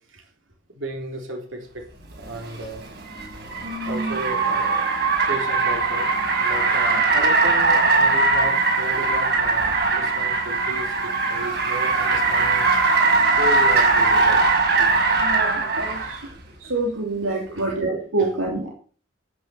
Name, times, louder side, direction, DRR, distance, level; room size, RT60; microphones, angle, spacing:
voice 1, 0.7-1.8 2.2-2.8 3.9-5.0 5.3-6.1 6.4-12.7 13.4-14.4 17.5-17.8, right 1 dB, 65° right, 2 dB, 3.7 m, -34 dB
Car, 2.3-16.2, right 3 dB, 50° right, 5.7 m, -20 dB
voice 2, 3.6-4.2 15.1-16.2 16.6-18.7, right 2 dB, 80° right, 0 dB, 3.1 m, -27 dB
14.0 x 9.5 x 5.8 m, 0.41 s
head